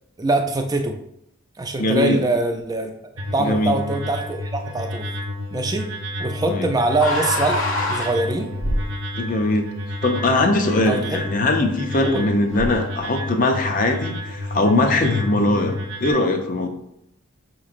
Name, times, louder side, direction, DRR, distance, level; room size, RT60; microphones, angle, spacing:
voice 1, 0.2-1.0 1.6-2.9 3.3-5.1 5.5-5.9 6.2-8.5 10.9-11.2 12.0-12.3, right 2 dB, 20° right, 5 dB, 0.4 m, -23 dB
voice 2, 1.8-2.2 3.4-3.8 6.5-6.7 9.2-9.7 10.0-16.7, left 2 dB, 40° left, 5 dB, 0.5 m, -21 dB
sound 1, 3.2-16.1, left 1 dB, 85° right, 0.7 m, -31 dB
sound 2, 7.0-9.0 10.6-10.8 12.5-12.9, left 1 dB, 75° left, 1.0 m, -25 dB
6.0 x 3.0 x 2.5 m, 0.79 s
head